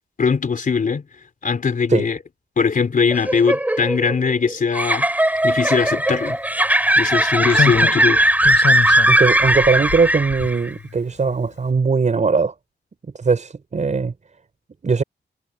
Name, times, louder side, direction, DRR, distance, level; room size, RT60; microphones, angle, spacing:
voice 1, 0.2-1.0 1.4-2.2 2.6-6.4 6.9-8.2, left 5 dB, 45° left, 3.9 m, -21 dB
sound 1, 3.1-10.7, right 1 dB, 10° right, 5.6 m, -18 dB
Slam, 6.1-6.2 7.5-11.0 11.3-11.5, left 7 dB, 75° left, 7.5 m, -26 dB
voice 2, 9.1-12.5 13.1-14.1 14.8-15.0, right 4 dB, 40° right, 5.3 m, -19 dB
wide cardioid pair, 170°, 19 cm